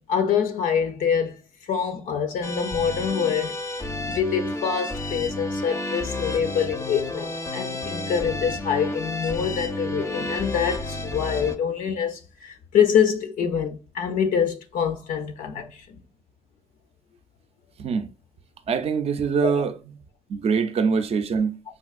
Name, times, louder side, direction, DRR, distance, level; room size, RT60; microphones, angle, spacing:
voice 1, 0.0-1.4 1.7-3.6 4.1-15.9 19.4-19.6, left 7 dB, 85° left, 0.5 m, -25 dB
sound 1, 2.4-11.5, left 2 dB, 20° left, 0.4 m, -31 dB
voice 2, 17.8-18.1 18.7-19.7 20.3-21.6, right 5 dB, 50° right, 0.4 m, -23 dB
3.6 x 2.5 x 2.3 m
cardioid pair, 95°, 14 cm